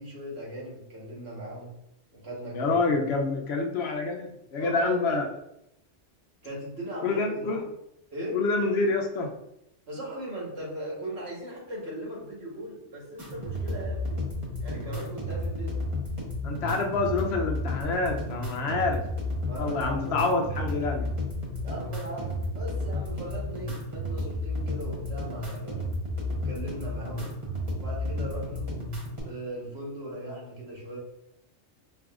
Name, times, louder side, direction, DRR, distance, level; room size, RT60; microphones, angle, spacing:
voice 1, 0.0-1.7 2.1-3.1 4.6-5.3 6.4-7.6 8.1-8.4 9.9-14.2 14.6-15.7 19.4-20.4 21.6-25.9 26.3-27.3 27.8-28.6 29.2-31.0, right 1 dB, 65° right, -4 dB, 1.5 m, -38 dB
voice 2, 2.5-5.3 7.0-7.6 8.3-9.3 16.4-19.0 19.6-21.1, left 3 dB, 70° left, 2 dB, 0.8 m, -27 dB
sound 1, 13.2-29.2, left 1 dB, 30° right, 1.0 m, -32 dB
4.9 x 2.6 x 2.4 m, 0.79 s
omnidirectional pair, 1.2 m